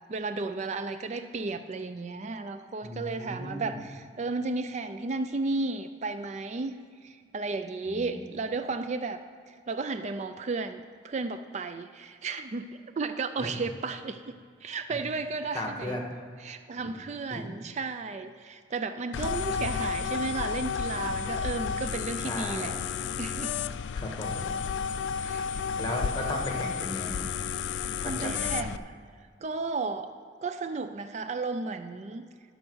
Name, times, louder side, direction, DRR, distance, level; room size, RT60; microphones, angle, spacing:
voice 1, 0.1-6.7 7.0-9.2 9.5-14.4 14.6-16.0 16.4-22.8 23.2-23.5 25.2-25.7 27.6-28.9 29.4-30.1 30.4-32.3, right 3 dB, 40° right, 9 dB, 0.4 m, -34 dB
voice 2, 2.8-3.8 7.9-8.4 13.4-13.5 14.9-15.0 15.5-16.1 17.3-17.5 22.2-22.7 23.9-24.5 25.2-25.4 25.8-27.3 28.0-28.6, left 1 dB, 25° left, 2 dB, 1.5 m, -36 dB
sound 1, 19.1-28.8, left 6 dB, 75° left, 0.3 m, -32 dB
12.5 x 5.2 x 6.2 m, 2.1 s
head